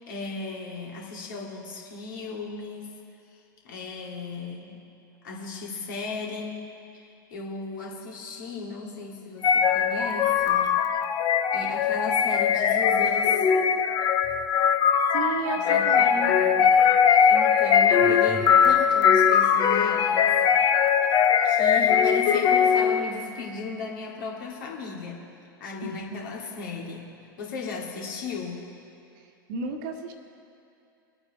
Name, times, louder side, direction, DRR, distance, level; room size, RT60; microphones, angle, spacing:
voice 1, 0.1-2.9 3.3-4.8 5.2-6.6 6.9-10.7 11.5-13.5 15.6-16.7 17.2-20.4 21.4-25.2 25.6-27.1 27.4-28.7, left 4 dB, 65° left, -2 dB, 2.4 m, -36 dB
sound 1, 9.4-23.1, left 7 dB, 35° left, 0.8 m, -21 dB
voice 2, 15.1-16.4 25.8-26.2 29.2-30.1, right 4 dB, 55° right, 4 dB, 1.4 m, -33 dB
22.5 x 8.8 x 3.2 m, 2.6 s
figure-of-eight pair, 90°, 12 cm